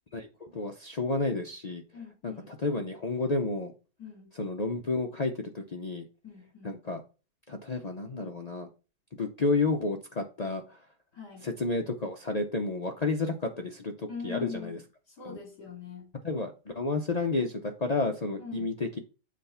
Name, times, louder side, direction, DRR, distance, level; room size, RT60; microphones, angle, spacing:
voice 1, 0.1-1.8 2.2-3.7 4.4-6.1 6.6-7.0 7.5-8.7 9.2-10.8 11.4-14.8 15.3-15.4 16.2-19.0, left 3 dB, 90° left, 0.3 m, -31 dB
voice 2, 1.9-2.6 4.0-4.3 6.2-6.8 11.1-11.5 14.1-14.8 15.1-16.1 18.4-18.7, left 6 dB, 65° left, 3.7 m, -42 dB
7.5 x 3.4 x 5.6 m
omnidirectional pair, 1.8 m